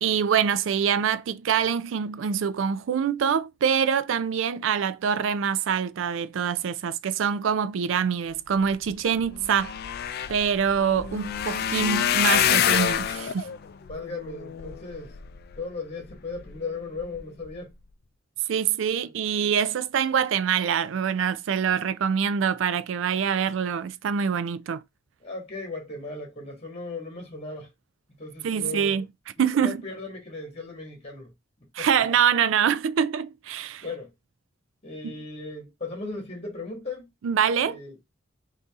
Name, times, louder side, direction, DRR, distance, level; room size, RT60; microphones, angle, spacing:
voice 1, 0.0-9.7 10.3-13.5 18.5-24.8 28.4-29.1 29.4-29.8 31.8-33.8 37.2-37.8, right 7 dB, 70° right, 0.4 m, -25 dB
sound 1, 8.9-9.0 9.2-15.6 16.1-16.6 17.0-17.2 17.5-17.6, left 9 dB, 50° left, 0.4 m, -27 dB
voice 2, 13.9-15.1 15.6-17.7 25.2-27.7 28.2-29.0 29.4-31.3 31.8-31.9 33.8-34.1 34.8-37.1 37.6-37.9, left 3 dB, 30° left, 1.7 m, -37 dB
3.9 x 2.7 x 3.5 m
head